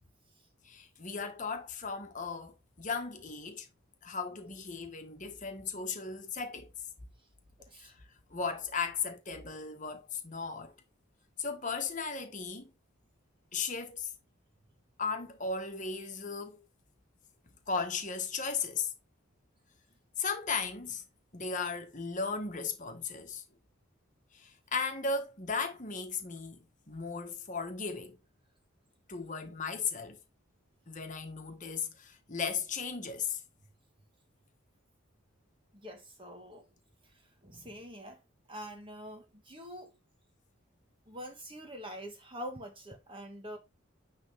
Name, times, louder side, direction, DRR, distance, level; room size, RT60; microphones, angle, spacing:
voice 1, 0.6-3.7 4.0-6.7 7.7-7.9 8.3-10.7 11.4-12.7 13.5-14.1 15.0-16.6 17.7-18.9 20.2-21.0 21.3-23.4 24.3-28.2 29.1-30.2 30.9-33.4, left 5 dB, 35° left, 1.4 m, -36 dB
voice 2, 7.6-7.9 35.7-36.7 37.0-38.2 38.5-40.0 41.1-43.6, equal, 25° right, 1.4 m, -45 dB
9.3 x 3.8 x 3.5 m
head